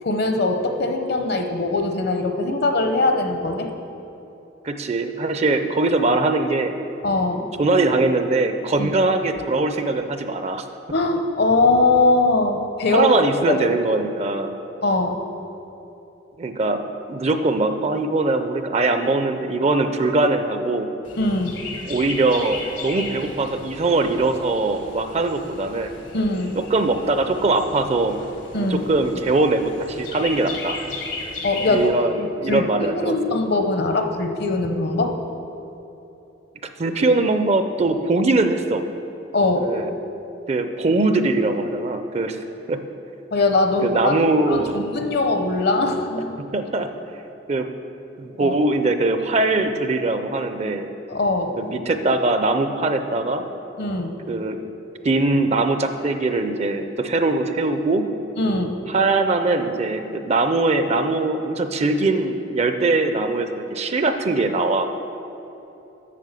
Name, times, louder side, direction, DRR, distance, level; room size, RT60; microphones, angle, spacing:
voice 1, 0.0-3.7 7.0-7.5 8.8-8.9 10.9-13.1 13.5-13.6 14.8-15.3 21.2-21.6 26.1-26.6 28.5-28.8 31.4-32.7 32.9-35.2 39.3-39.7 43.3-44.1 44.5-46.4 48.4-48.5 51.1-51.6 53.8-54.2 58.4-58.8, left 2 dB, 60° left, 5 dB, 0.8 m, -21 dB
voice 2, 4.6-6.7 7.6-10.7 12.9-14.5 16.4-20.9 21.9-25.9 26.6-28.2 28.6-30.8 31.7-33.1 36.8-38.8 39.6-39.9 40.5-42.4 42.7-42.8 43.8-44.8 46.5-46.9 47.5-47.7 48.2-50.9 51.6-53.4 54.3-54.6 55.0-58.1 58.9-64.9, right 2 dB, 35° right, 8 dB, 0.5 m, -21 dB
Chirp tweet, 21.0-31.9, left 3 dB, 80° left, 1.3 m, -36 dB
8.5 x 6.2 x 6.7 m, 2.9 s
head